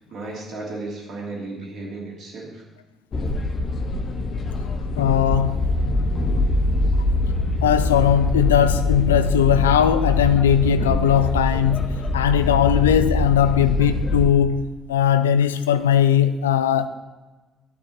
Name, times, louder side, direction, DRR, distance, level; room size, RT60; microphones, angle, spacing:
voice 1, 0.0-2.6, right 2 dB, 55° right, 2.9 m, -34 dB
sound 1, 3.1-14.3, left 2 dB, 45° left, 1.2 m, -23 dB
voice 2, 5.0-5.7 7.6-16.9, left 9 dB, 80° left, 0.4 m, -19 dB
12.0 x 8.9 x 4.3 m
figure-of-eight pair, 45°, 0 cm